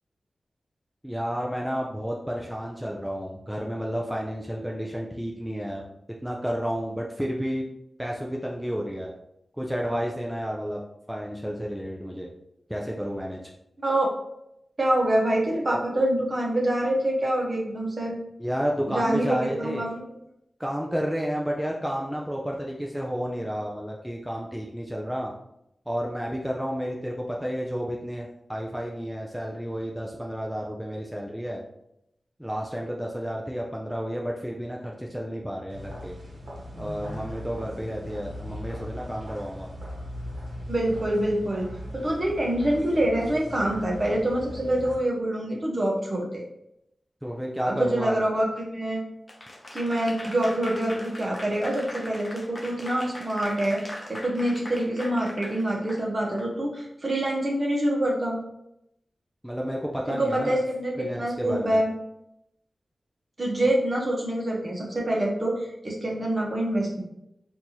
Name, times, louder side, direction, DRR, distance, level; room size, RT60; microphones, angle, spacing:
voice 1, 1.0-5.9 6.2-7.6 8.0-9.1 9.5-10.8 11.1-12.3 12.7-13.4 18.4-19.9 20.6-25.3 25.9-31.6 32.4-36.2 36.8-39.7 47.2-48.3 59.4-60.6 61.0-61.8, equal, 5° right, -2 dB, 0.5 m, -31 dB
voice 2, 14.8-18.2 18.9-20.0 40.7-46.4 47.7-49.0 49.7-58.4 60.1-61.9 63.4-67.0, right 1 dB, 40° right, -2 dB, 1.1 m, -26 dB
sound 1, 35.7-45.0, equal, 80° right, 1.0 m, -39 dB
Applause / Crowd, 49.3-56.5, left 1 dB, 30° left, 0.7 m, -41 dB
4.3 x 2.6 x 2.9 m, 0.81 s
cardioid pair, 65°, 0 cm